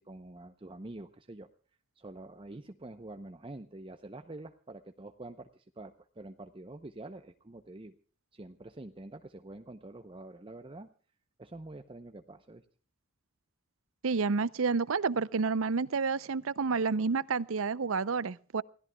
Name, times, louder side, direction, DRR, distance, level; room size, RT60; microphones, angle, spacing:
voice 1, 0.0-1.5 2.0-8.0 8.3-10.9 11.4-12.7, right 2 dB, 25° right, 0.7 m, -46 dB
voice 2, 14.0-18.6, right 4 dB, 75° right, 0.6 m, -29 dB
28.0 x 16.5 x 2.3 m
head